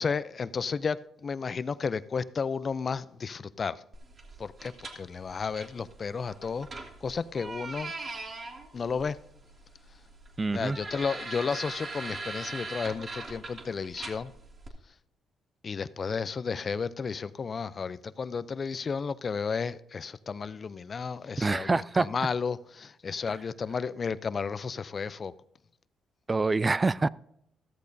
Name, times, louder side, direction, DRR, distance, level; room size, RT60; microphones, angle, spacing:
voice 1, 0.0-3.8 4.4-6.7 7.0-7.9 8.7-9.2 10.5-14.3 15.6-25.3, left 5 dB, 40° left, 0.5 m, -33 dB
sound 1, 3.9-14.7, right 3 dB, 40° right, 1.9 m, -42 dB
voice 2, 10.4-10.8 21.4-22.1 26.3-27.1, right 3 dB, 25° right, 0.3 m, -26 dB
14.0 x 13.5 x 2.7 m
cardioid pair, 90°, 0 cm